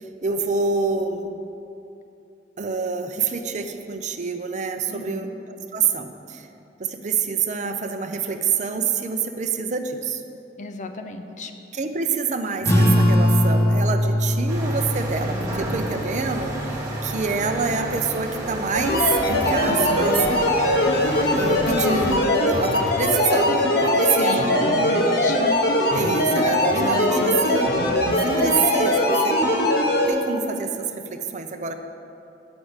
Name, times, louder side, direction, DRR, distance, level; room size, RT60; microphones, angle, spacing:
voice 1, 0.2-1.4 2.6-5.3 5.7-6.5 6.8-10.2 11.7-20.2 21.4-24.7 25.9-27.7 28.1-29.4 30.1-31.7, right 5 dB, 40° right, 6 dB, 0.6 m, -26 dB
voice 2, 4.9-5.3 10.6-11.5 24.0-25.4, left 3 dB, 45° left, 6 dB, 0.7 m, -33 dB
sound 1, 12.6-17.7, equal, 15° left, 1.0 m, -22 dB
sound 2, 14.5-22.2, right 1 dB, 20° right, 1.3 m, -31 dB
sound 3, 18.7-30.1, left 1 dB, 60° left, 1.2 m, -21 dB
8.7 x 6.2 x 8.0 m, 2.7 s
head